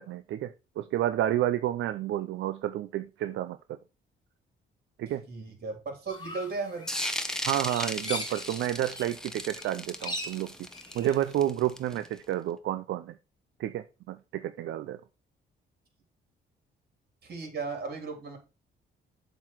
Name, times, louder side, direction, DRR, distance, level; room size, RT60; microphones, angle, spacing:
voice 1, 0.0-3.8 5.0-5.2 7.4-10.5 10.9-13.2 13.6-15.0, right 12 dB, 75° right, 0.5 m, -30 dB
voice 2, 5.3-6.9 17.2-18.4, right 4 dB, 50° right, 3.3 m, -36 dB
sound 1, 6.1-9.2 9.4-11.4, left 2 dB, 20° left, 2.0 m, -40 dB
sound 2, 6.9-12.2, left 1 dB, 5° left, 1.0 m, -36 dB
7.2 x 3.9 x 6.1 m
cardioid pair, 90°, 20 cm